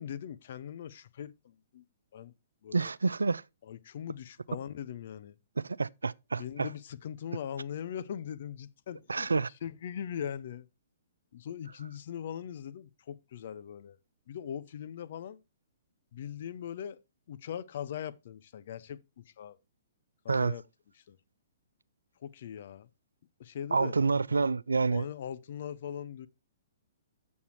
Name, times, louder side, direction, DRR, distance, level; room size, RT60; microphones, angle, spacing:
voice 1, 0.0-1.8 2.1-2.3 2.6-2.9 3.7-5.4 6.4-9.3 9.6-10.7 11.3-14.0 14.3-15.4 16.1-17.0 17.3-19.6 20.2-20.6 21.1-21.2 22.2-22.9 23.4-23.9 24.9-26.3, left 9 dB, 55° left, 0.7 m, -40 dB
voice 2, 2.7-3.4 5.6-6.7 9.1-9.5 20.3-20.6 23.7-25.1, right 4 dB, 80° right, 0.3 m, -28 dB
7.1 x 6.5 x 4.4 m
figure-of-eight pair, 120°, 0 cm